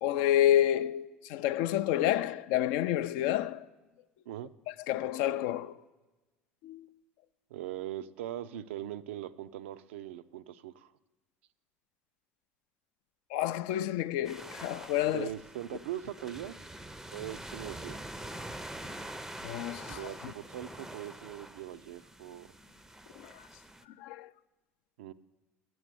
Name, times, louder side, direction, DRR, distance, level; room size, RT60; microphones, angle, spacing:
voice 1, 0.0-3.6 4.7-5.7 6.6-6.9 13.3-15.3 19.4-20.3 23.2-23.5 24.0-24.3, left 12 dB, 65° left, 0.4 m, -29 dB
voice 2, 7.5-10.9 15.0-16.5 17.1-18.0 19.9-22.5 25.0-25.1, right 12 dB, 75° right, 0.3 m, -41 dB
sound 1, 14.2-23.8, right 1 dB, 5° right, 0.5 m, -45 dB
7.7 x 7.3 x 6.7 m
hypercardioid pair, 70°, 7 cm